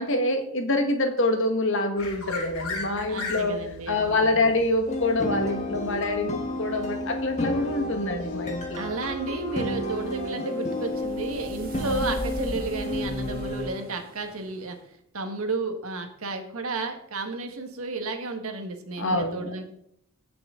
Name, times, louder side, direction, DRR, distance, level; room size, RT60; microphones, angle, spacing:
voice 1, 0.0-3.6 3.9-8.9 19.0-19.5, left 2 dB, 60° left, 5 dB, 1.6 m, -26 dB
sound 1, 2.0-10.3, left 3 dB, 75° left, 2.4 m, -40 dB
voice 2, 3.1-4.5 8.8-14.8 15.1-19.6, right 3 dB, 75° right, 5 dB, 1.6 m, -32 dB
sound 2, 4.9-13.8, left 1 dB, 30° left, 1.3 m, -31 dB
sound 3, 9.4-14.7, equal, 40° right, 2.1 m, -40 dB
16.5 x 6.1 x 3.8 m, 0.72 s
head